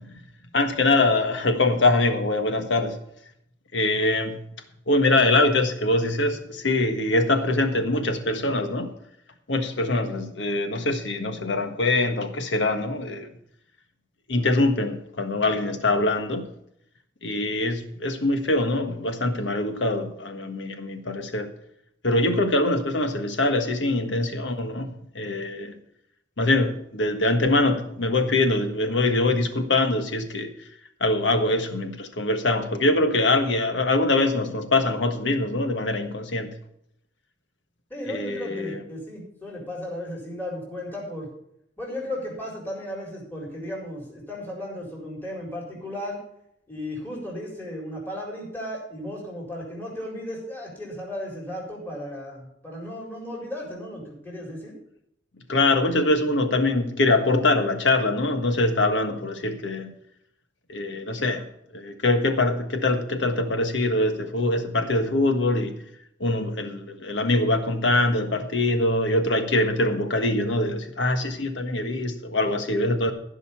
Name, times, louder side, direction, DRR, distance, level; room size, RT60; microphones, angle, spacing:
voice 1, 0.5-3.0 3.7-4.4 4.9-8.9 9.5-13.3 14.3-16.4 17.2-21.5 22.0-24.9 25.1-25.7 26.4-30.5 31.0-36.5 38.1-38.8 55.5-59.9 60.7-61.4 61.7-65.7 66.2-73.1, left 2 dB, 75° left, 6 dB, 1.5 m, -23 dB
voice 2, 37.9-41.3 41.8-46.2 46.7-54.8, left 1 dB, 10° left, -3 dB, 4.2 m, -35 dB
15.0 x 5.6 x 7.2 m, 0.75 s
head